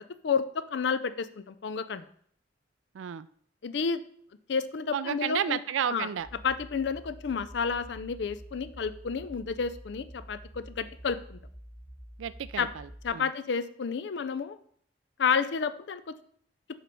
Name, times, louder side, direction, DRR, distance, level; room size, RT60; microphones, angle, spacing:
voice 1, 0.0-2.0 3.6-4.0 4.5-5.6 5.9-6.1 6.4-11.4 12.6-12.7 13.0-14.6 15.2-16.1, left 5 dB, 65° left, 12 dB, 0.4 m, -30 dB
voice 2, 2.9-3.3 4.9-6.3 12.2-13.3, right 8 dB, 90° right, 15 dB, 0.3 m, -32 dB
sound 1, 6.2-13.1, equal, 45° left, 1.4 m, -48 dB
5.0 x 4.4 x 5.3 m, 0.62 s
head